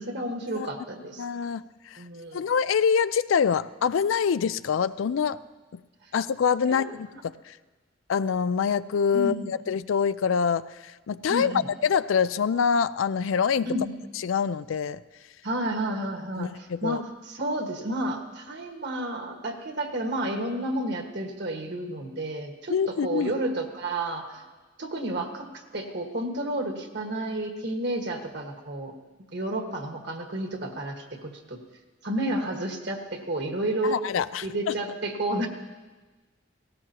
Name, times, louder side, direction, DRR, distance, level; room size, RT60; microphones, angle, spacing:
voice 1, 0.0-1.2 2.0-2.4 6.6-6.9 9.1-9.5 11.3-11.7 13.6-13.9 15.4-24.4 24.8-28.9 29.3-31.6 32.0-34.0 34.4-35.5, right 1 dB, 60° right, 3 dB, 1.6 m, -31 dB
voice 2, 1.2-1.6 1.9-2.0 2.3-5.4 6.1-7.1 7.5-7.6 8.1-10.7 11.1-11.5 11.8-13.7 14.2-15.0 16.4-17.0 22.7-23.3 33.8-34.7, left 6 dB, 80° left, 16 dB, 0.4 m, -25 dB
18.0 x 17.5 x 2.9 m, 1.3 s
head